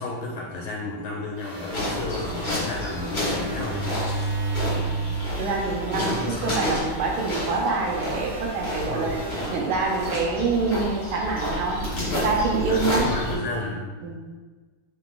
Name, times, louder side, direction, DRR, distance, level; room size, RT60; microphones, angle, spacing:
voice 1, 0.0-3.9 5.9-6.6 8.9-9.2 11.9-12.2 12.7-14.0, left 2 dB, 75° left, -3 dB, 1.4 m, -32 dB
sound 1, 1.4-10.8, right 3 dB, 45° right, 1.0 m, -34 dB
sound 2, 1.7-13.3, left 1 dB, 40° left, 1.6 m, -30 dB
voice 2, 5.4-6.1 6.4-9.2 9.5-11.8 12.1-13.5 14.0-14.2, right 4 dB, 75° right, -1 dB, 1.5 m, -26 dB
3.9 x 2.8 x 3.4 m, 1.3 s
omnidirectional pair, 2.4 m